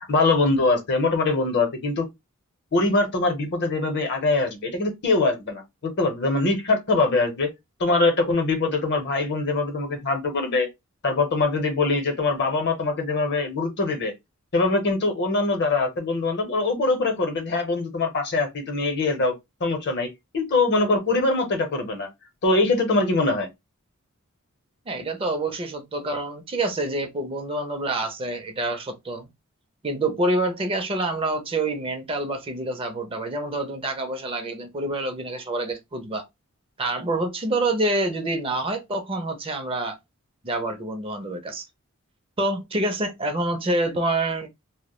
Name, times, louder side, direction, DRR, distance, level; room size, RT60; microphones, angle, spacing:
voice 1, 0.1-2.1 2.7-7.5 7.8-10.7 11.0-14.1 14.5-22.1 22.4-23.5, left 3 dB, 55° left, 0.7 m, -23 dB
voice 2, 24.9-29.3 29.8-36.3 36.8-40.0 40.4-41.7 42.4-44.5, right 2 dB, 25° right, 0.4 m, -27 dB
2.2 x 2.0 x 2.9 m
head